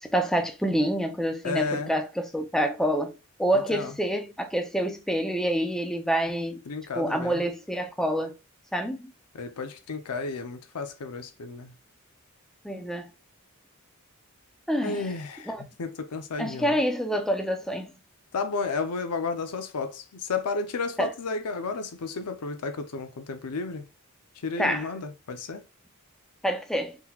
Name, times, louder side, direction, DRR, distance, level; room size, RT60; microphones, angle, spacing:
voice 1, 0.0-6.6 6.9-8.3 8.7-9.1 12.6-13.1 14.7-15.1 15.4-15.6 16.4-17.9 21.0-21.1 24.6-24.9 26.4-27.0, equal, ahead, 0.4 m, -27 dB
voice 2, 1.4-1.9 3.7-3.9 6.7-7.4 9.3-11.7 14.8-16.8 18.3-23.9 24.4-25.6, left 4 dB, 90° left, 0.6 m, -32 dB
3.8 x 2.9 x 2.3 m
head